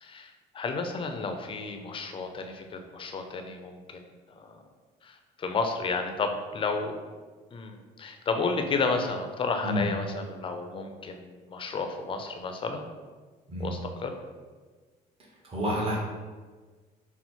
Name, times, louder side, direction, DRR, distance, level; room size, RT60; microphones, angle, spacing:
voice 1, 0.0-4.1 4.4-4.6 5.0-7.0 7.5-12.9 13.6-14.1, left 4 dB, 30° left, 5 dB, 0.5 m, -32 dB
voice 2, 15.4-16.0, equal, 35° right, -4 dB, 1.0 m, -28 dB
4.2 x 2.0 x 4.3 m, 1.4 s
cardioid pair, 110°, 17 cm